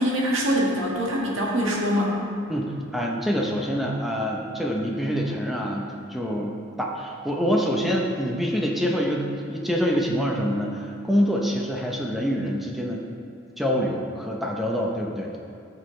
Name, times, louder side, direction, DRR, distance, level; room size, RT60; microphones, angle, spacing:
voice 1, 0.0-2.2, equal, 75° right, -3 dB, 1.7 m, -24 dB
voice 2, 2.5-6.5 6.8-13.0 13.6-15.3, equal, ahead, -1 dB, 0.7 m, -26 dB
13.0 x 6.5 x 3.2 m, 2.6 s
head